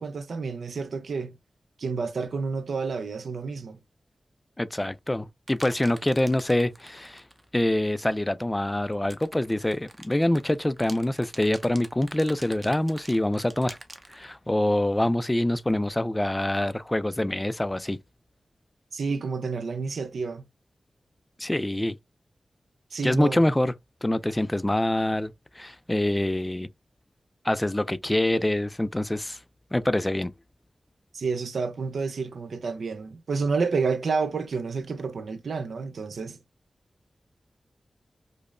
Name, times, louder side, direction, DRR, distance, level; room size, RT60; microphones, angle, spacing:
voice 1, 0.0-1.4 1.8-3.8 18.9-20.4 22.9-23.5 31.1-36.4, right 4 dB, 90° right, 0.5 m, -29 dB
voice 2, 4.6-7.2 7.5-13.8 14.1-18.0 21.4-22.0 23.0-23.7 24.0-26.7 27.4-29.4 29.7-30.3, left 1 dB, 15° left, 0.3 m, -25 dB
sound 1, 5.5-7.5 8.9-14.2, right 2 dB, 35° right, 0.6 m, -46 dB
5.1 x 2.0 x 2.4 m
wide cardioid pair, 85°, 0 cm